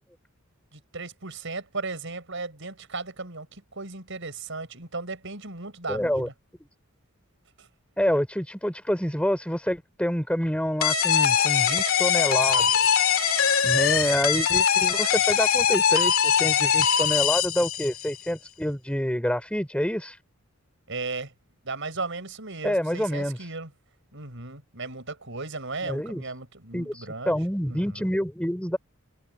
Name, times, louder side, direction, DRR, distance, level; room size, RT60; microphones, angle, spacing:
voice 1, 0.7-6.3 7.6-7.7 20.9-21.3 21.6-23.7 24.1-27.4 27.7-28.1, right 3 dB, 60° right, 6.9 m, -36 dB
voice 2, 5.9-6.3 8.0-12.7 13.6-20.2 22.6-23.4 25.8-26.2 26.7-28.8, equal, 5° left, 6.2 m, -27 dB
sound 1, 10.8-18.2, left 8 dB, 70° left, 2.7 m, -22 dB
head